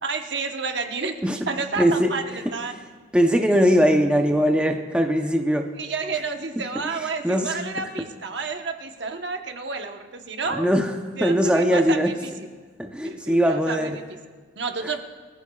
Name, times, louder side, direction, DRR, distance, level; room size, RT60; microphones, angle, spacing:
voice 1, 0.0-1.2 1.5-2.7 5.8-10.7 11.2-12.3 13.0-14.0 14.6-15.0, right 4 dB, 70° right, 4 dB, 1.1 m, -30 dB
voice 2, 1.8-2.1 3.1-5.7 7.2-7.6 10.5-10.9 11.2-12.1 12.8-14.0, equal, 5° right, 3 dB, 0.7 m, -20 dB
24.0 x 14.5 x 2.4 m, 1.5 s
head